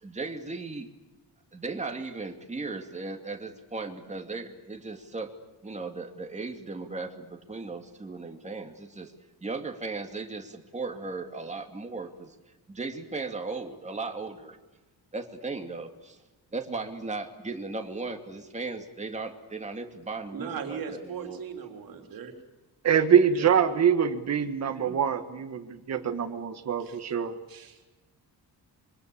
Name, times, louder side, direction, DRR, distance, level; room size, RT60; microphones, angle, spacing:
voice 1, 0.0-0.9 1.5-5.3 5.6-9.1 9.4-12.3 12.7-14.6 15.1-15.9 16.5-21.4, right 3 dB, 20° right, 4 dB, 2.4 m, -36 dB
voice 2, 20.3-22.3 23.3-23.6 26.8-27.0 27.5-27.9, right 6 dB, 65° right, 4 dB, 3.4 m, -38 dB
voice 3, 22.8-27.3, right 8 dB, 45° right, 7 dB, 1.5 m, -24 dB
26.0 x 23.5 x 8.6 m, 1.1 s
wide cardioid pair, 145°, 38 cm